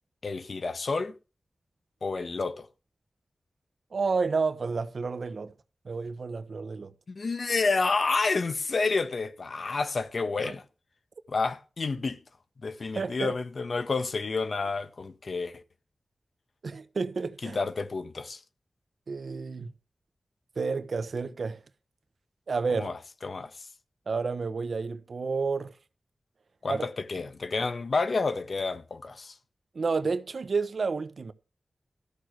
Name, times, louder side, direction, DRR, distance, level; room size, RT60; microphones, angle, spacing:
voice 1, 0.2-1.1 2.0-2.7 7.1-10.6 11.3-12.2 12.6-15.6 17.4-18.4 22.7-23.7 26.6-29.4, left 4 dB, 70° left, 1.3 m, -30 dB
voice 2, 3.9-5.5 5.8-6.9 10.4-10.5 13.0-13.3 16.6-17.6 19.1-19.7 20.6-21.6 22.5-22.9 24.1-25.7 26.7-26.8 29.7-31.3, right 4 dB, 80° right, 1.0 m, -30 dB
14.0 x 6.4 x 6.2 m
wide cardioid pair, 80°, 0 cm